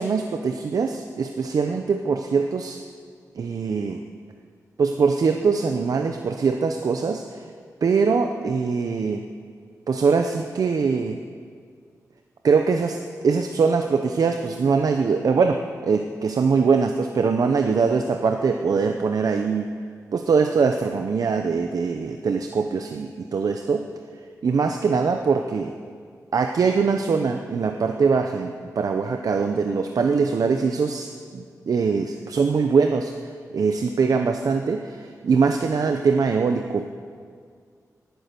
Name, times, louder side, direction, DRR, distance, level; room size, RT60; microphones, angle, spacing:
voice 1, 0.0-2.8 3.4-4.0 4.8-7.5 7.8-9.2 9.9-11.2 12.4-13.0 13.2-19.7 20.1-23.8 24.4-25.7 26.3-33.1 33.5-36.9, right 5 dB, 70° right, 5 dB, 0.7 m, -22 dB
19.5 x 9.3 x 6.8 m, 2.1 s
wide cardioid pair, 95°, 6 cm